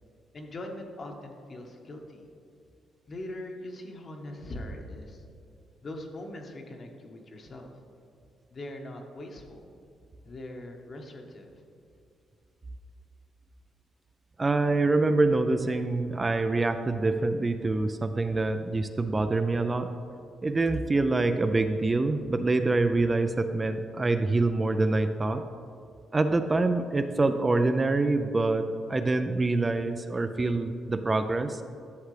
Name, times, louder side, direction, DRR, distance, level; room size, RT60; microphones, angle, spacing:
voice 1, 0.3-2.2 3.1-5.2 5.8-7.7 8.5-9.7 10.2-11.5, left 1 dB, 45° left, 2 dB, 1.2 m, -41 dB
voice 2, 14.4-19.9 20.4-25.4 26.1-31.6, right 2 dB, 25° right, 8 dB, 0.4 m, -25 dB
11.5 x 6.5 x 3.3 m, 2.5 s
cardioid pair, 90°, 0 cm